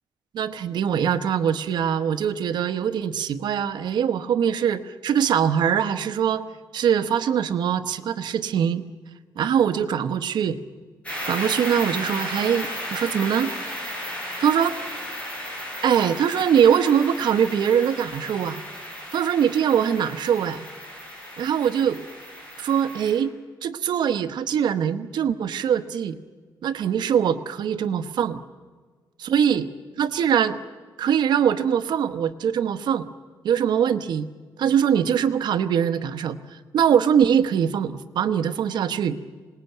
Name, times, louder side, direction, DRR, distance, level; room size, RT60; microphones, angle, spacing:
voice 1, 0.3-6.5 6.7-8.9 9.4-10.6 11.2-13.5 14.4-14.7 15.8-18.6 19.1-20.6 21.4-22.0 22.6-23.3 23.6-26.2 26.6-28.4 29.2-29.7 30.0-30.6 31.0-33.1 33.4-34.3 34.6-39.2, right 8 dB, 75° right, 11 dB, 1.0 m, -22 dB
sound 1, 11.0-23.2, equal, 15° left, 7.9 m, -34 dB
26.5 x 19.5 x 9.2 m, 1.5 s
wide cardioid pair, 160°, 8 cm